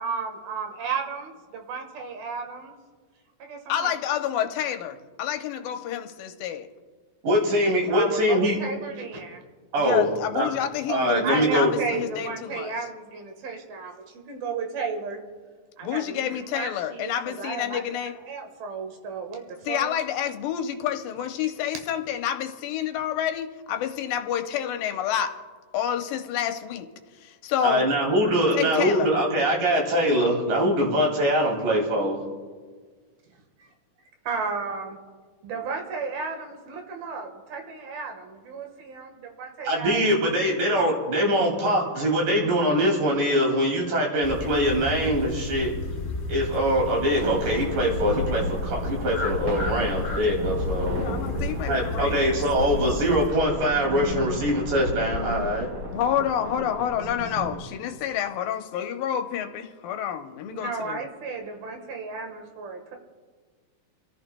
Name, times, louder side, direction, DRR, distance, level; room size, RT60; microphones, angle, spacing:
voice 1, 0.0-2.7 3.4-3.9 7.9-9.4 11.0-15.2 15.8-20.0 33.3-33.7 34.2-35.0 35.4-40.0 60.5-63.0, right 5 dB, 85° right, 4 dB, 3.2 m, -34 dB
voice 2, 3.7-6.7 9.8-12.7 15.8-18.1 19.7-25.3 25.7-26.9 27.2-27.9 28.5-29.1 50.9-52.3 55.9-61.0, left 10 dB, 80° left, 7 dB, 2.5 m, -28 dB
voice 3, 7.2-8.6 9.7-10.1 10.3-10.5 10.9-11.7 27.6-32.2 39.7-45.7 46.3-51.1 51.7-55.7, equal, 65° right, 0 dB, 4.0 m, -23 dB
sound 1, 44.2-53.3, left 2 dB, 35° left, 1.4 m, -33 dB
sound 2, 47.2-57.6, left 1 dB, 45° right, 3.2 m, -33 dB
28.0 x 14.0 x 2.2 m, 1.5 s
omnidirectional pair, 4.2 m